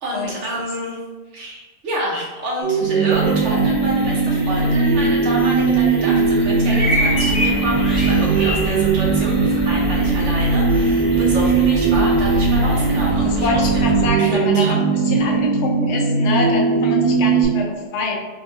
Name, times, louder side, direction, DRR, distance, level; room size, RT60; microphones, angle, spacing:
voice 1, 0.0-1.0 1.3-13.9 14.2-14.7, right 1 dB, 85° right, -3 dB, 1.2 m, -28 dB
sound 1, 2.6-17.4, right 4 dB, 45° right, 1.0 m, -19 dB
sound 2, 3.1-13.1, left 1 dB, 45° left, 0.7 m, -33 dB
sound 3, 6.7-14.1, equal, ahead, 0.6 m, -26 dB
voice 2, 13.2-14.8 15.0-18.2, left 3 dB, 90° left, 0 dB, 1.0 m, -25 dB
4.3 x 2.4 x 2.6 m, 1.2 s
omnidirectional pair, 1.2 m